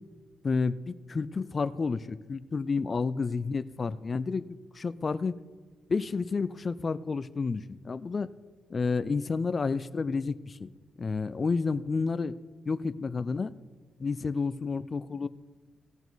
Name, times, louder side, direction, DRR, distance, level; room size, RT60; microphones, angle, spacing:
voice 1, 0.4-4.4 4.7-5.3 5.9-8.3 8.7-10.7 11.0-12.3 12.7-13.5 14.0-15.3, left 4 dB, 40° left, 14 dB, 0.4 m, -30 dB
17.5 x 7.0 x 4.0 m, 1.4 s
cardioid pair, 95°, 0 cm